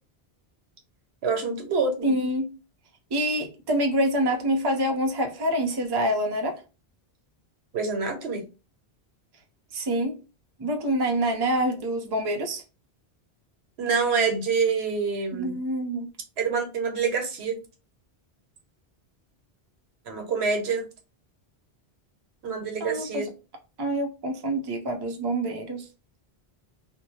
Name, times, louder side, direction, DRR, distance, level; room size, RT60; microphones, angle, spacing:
voice 1, 1.2-2.1 7.7-8.4 13.8-15.6 16.4-17.6 20.1-20.8 22.4-23.3, right 5 dB, 90° right, 1.1 m, -26 dB
voice 2, 2.0-2.5 3.1-6.6 9.7-10.1 10.6-12.6 15.3-16.1 22.8-23.2 23.8-25.8, right 1 dB, 30° right, 0.5 m, -26 dB
2.7 x 2.2 x 3.0 m
omnidirectional pair, 1.1 m